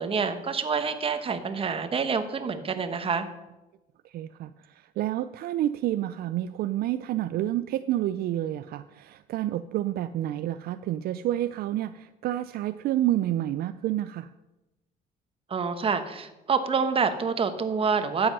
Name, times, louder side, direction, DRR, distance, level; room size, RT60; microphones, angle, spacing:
voice 1, 0.0-3.3 15.5-18.3, right 5 dB, 35° right, 9 dB, 1.2 m, -27 dB
voice 2, 4.1-4.5 5.0-14.3, right 13 dB, 65° right, 12 dB, 0.4 m, -29 dB
12.0 x 7.8 x 5.4 m, 1.0 s
cardioid pair, 110°, 17 cm